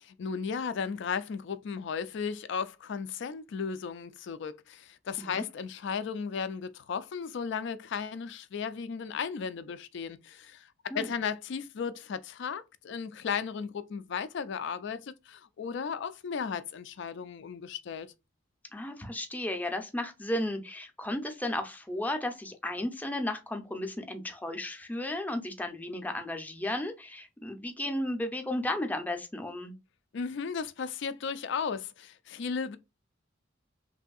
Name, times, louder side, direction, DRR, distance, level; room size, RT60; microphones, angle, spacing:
voice 1, 0.2-10.7 10.9-18.1 30.1-32.8, left 6 dB, 65° left, 0.4 m, -35 dB
voice 2, 18.7-29.7, left 1 dB, 10° left, 0.5 m, -34 dB
3.3 x 2.6 x 2.3 m
head